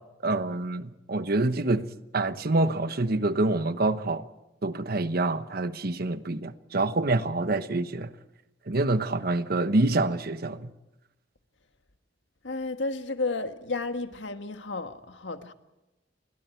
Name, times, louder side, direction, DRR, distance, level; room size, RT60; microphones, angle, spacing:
voice 1, 0.2-1.9 2.1-4.3 4.6-8.1 8.7-10.7, right 2 dB, 55° right, 1.1 m, -26 dB
voice 2, 12.4-15.5, left 3 dB, 80° left, 1.6 m, -32 dB
30.0 x 22.0 x 4.6 m
head